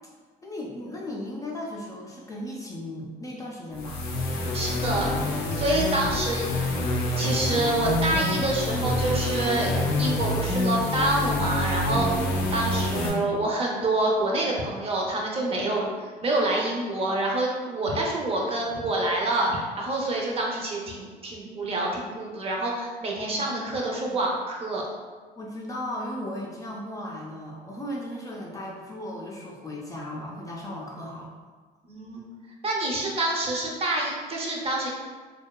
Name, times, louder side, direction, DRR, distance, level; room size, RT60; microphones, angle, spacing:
voice 1, 0.4-4.1 11.9-12.3 23.3-24.0 25.4-31.3, left 1 dB, 20° left, -3 dB, 0.4 m, -36 dB
sound 1, 3.7-13.1, left 1 dB, 90° left, 0.5 m, -27 dB
voice 2, 4.5-5.1 5.5-6.7 7.2-9.7 10.0-12.1 12.5-24.8 31.8-32.2 32.6-34.9, right 2 dB, 35° right, -2 dB, 0.5 m, -27 dB
2.7 x 2.2 x 2.2 m, 1.5 s
cardioid pair, 110°, 17 cm